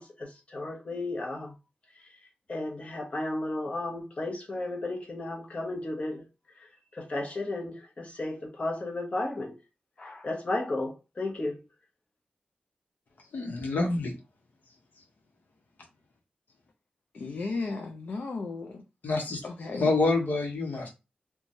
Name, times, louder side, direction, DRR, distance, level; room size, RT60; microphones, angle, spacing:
voice 1, 0.0-1.5 2.5-6.2 6.6-9.6 10.0-11.6, left 2 dB, 45° left, 0.9 m, -34 dB
voice 2, 13.3-14.1 19.0-19.4 19.7-20.9, left 3 dB, 85° left, 0.8 m, -27 dB
voice 3, 17.1-18.8 19.4-19.9, left 3 dB, 65° left, 0.4 m, -35 dB
3.0 x 2.2 x 2.5 m
wide cardioid pair, 100°, 3 cm